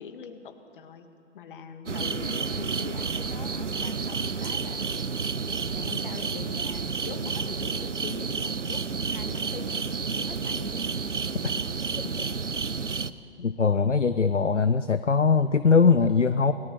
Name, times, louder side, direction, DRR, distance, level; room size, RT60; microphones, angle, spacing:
voice 1, 0.0-4.9 5.7-9.9 10.1-11.0, left 6 dB, 45° left, 8 dB, 2.0 m, -42 dB
sound 1, 1.9-13.1, right 5 dB, 85° right, 0.9 m, -30 dB
voice 2, 13.4-16.5, left 5 dB, 90° left, 13 dB, 0.8 m, -21 dB
28.0 x 17.5 x 7.2 m, 2.6 s
figure-of-eight pair, 120°, 35 cm